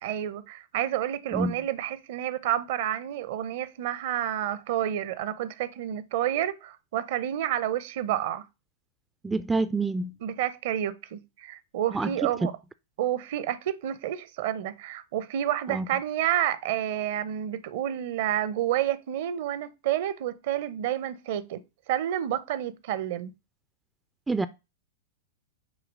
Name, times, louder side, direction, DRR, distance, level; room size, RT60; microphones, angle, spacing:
voice 1, 0.0-8.4 10.2-12.5 13.0-21.6 21.9-23.3, right 11 dB, 55° right, 0.6 m, -29 dB
voice 2, 9.2-10.1 11.9-12.1 12.4-12.5 15.7-15.9 24.3-24.5, right 3 dB, 10° right, 0.3 m, -27 dB
6.4 x 2.9 x 5.1 m
figure-of-eight pair, 95°, 0 cm